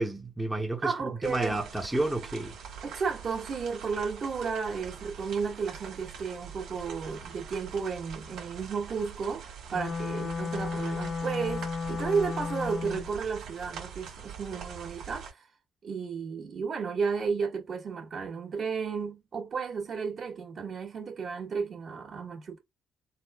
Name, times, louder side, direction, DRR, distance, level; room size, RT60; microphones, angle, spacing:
voice 1, 0.0-2.6, right 2 dB, 5° right, 0.7 m, -31 dB
voice 2, 0.8-1.6 2.8-9.4 9.7-15.5 15.8-22.6, right 5 dB, 55° right, 1.6 m, -33 dB
sound 1, 1.2-15.3, right 7 dB, 80° right, 1.7 m, -44 dB
Wind instrument woodwind instrument, 9.7-13.1, left 5 dB, 35° left, 0.5 m, -33 dB
4.1 x 2.3 x 2.2 m
cardioid pair, 90°, 0 cm